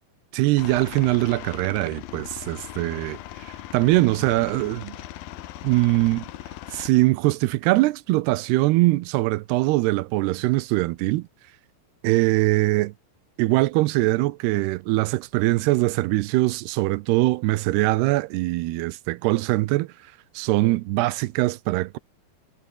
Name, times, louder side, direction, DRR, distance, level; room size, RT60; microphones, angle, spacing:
voice 1, 0.3-3.2 3.7-4.9 5.6-6.3 6.7-11.3 12.0-12.9 13.4-19.9 20.4-22.0, right 19 dB, 90° right, 2.8 m, -22 dB
Aircraft, 0.6-6.9, left 14 dB, 70° left, 2.8 m, -39 dB
omnidirectional pair, 4.6 m